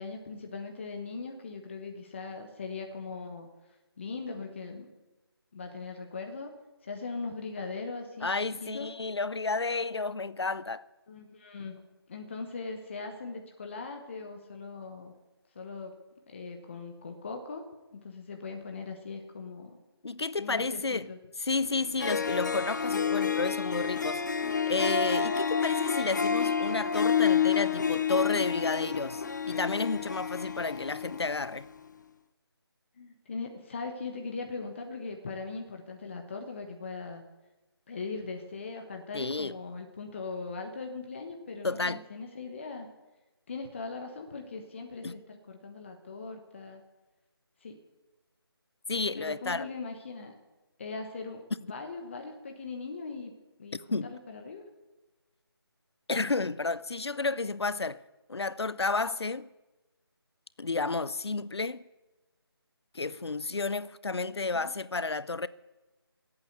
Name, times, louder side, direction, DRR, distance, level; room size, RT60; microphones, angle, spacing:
voice 1, 0.0-3.5 4.0-4.9 5.5-6.5 6.8-8.3 8.6-8.9 11.1-11.8 12.1-15.1 15.5-15.9 16.3-17.6 17.9-19.8 20.4-21.2 24.4-24.6 33.0-37.2 37.9-42.9 43.5-46.8 47.6-47.8 49.2-50.3 50.8-53.3 53.6-54.6, left 4 dB, 30° left, 1.1 m, -40 dB
voice 2, 8.2-10.8 20.0-21.1 21.4-24.3 24.7-31.7 39.1-39.6 41.6-42.0 45.0-45.1 48.9-49.7 53.9-54.1 56.1-58.0 58.3-59.5 60.6-61.8 62.9-65.5, left 3 dB, 80° left, 0.6 m, -31 dB
Harp, 21.7-21.8 22.0-31.5, left 7 dB, 45° left, 0.7 m, -29 dB
19.0 x 8.7 x 8.0 m
figure-of-eight pair, 165°, 13 cm